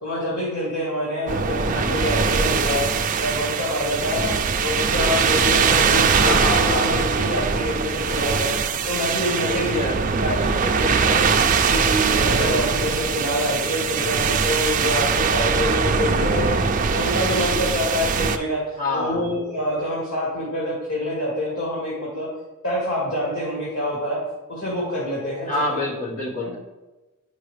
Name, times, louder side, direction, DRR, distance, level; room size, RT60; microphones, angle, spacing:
voice 1, 0.0-2.9 3.2-4.3 4.6-8.5 8.9-9.8 10.2-10.3 10.8-11.2 11.6-16.6 16.9-18.6 18.9-22.3 22.6-24.2 24.5-25.5 26.4-26.5, left 1 dB, 90° left, -6 dB, 2.2 m, -26 dB
sound 1, 1.3-18.4, right 5 dB, 35° right, 0.4 m, -21 dB
voice 2, 1.7-2.1 6.2-7.1 9.4-11.2 18.8-19.3 25.5-26.6, left 2 dB, 40° left, -2 dB, 1.4 m, -28 dB
9.5 x 5.5 x 3.3 m, 1.1 s
head